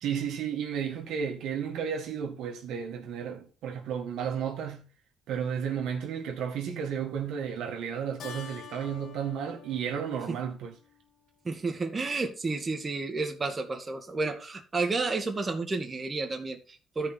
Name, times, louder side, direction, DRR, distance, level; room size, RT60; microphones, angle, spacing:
voice 1, 0.0-4.9 5.3-10.7, right 7 dB, 85° right, 1.8 m, -33 dB
Keyboard (musical), 8.2-11.1, left 7 dB, 70° left, 2.2 m, -47 dB
voice 2, 11.5-17.1, right 3 dB, 30° right, 1.9 m, -31 dB
13.0 x 5.3 x 4.4 m
cardioid pair, 90°, 0 cm